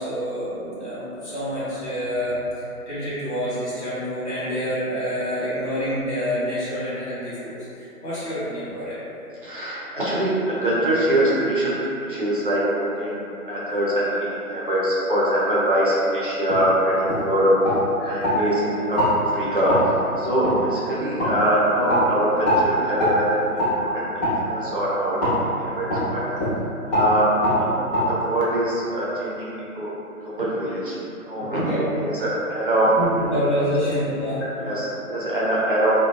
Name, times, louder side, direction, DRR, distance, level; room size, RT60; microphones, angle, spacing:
voice 1, 0.0-2.4 2.9-9.0 18.0-18.2 31.5-31.8 33.0-34.6, equal, 45° left, -13 dB, 1.3 m, -27 dB
voice 2, 9.4-11.7 12.0-17.5 18.0-19.0 19.3-23.4 23.8-24.1 24.4-25.2 25.6-26.2 26.8-29.9 30.2-31.0 31.2-32.9 33.3-33.7 34.6-36.0, right 1 dB, 35° right, -8 dB, 0.5 m, -23 dB
sound 1, 16.5-16.6 17.1-17.2 17.6-18.4 18.9-19.1 19.7-19.8 20.4-20.6 21.2-21.3 21.9-22.0 22.4-22.6 23.0-23.2 23.6-23.7 24.2-24.4 25.2-25.4 25.9-26.0 26.4-26.5 26.9-27.1 27.4-27.6 27.9-28.0, left 1 dB, 25° left, 1.3 m, -22 dB
2.9 x 2.1 x 2.2 m, 2.8 s
figure-of-eight pair, 145°, 45 cm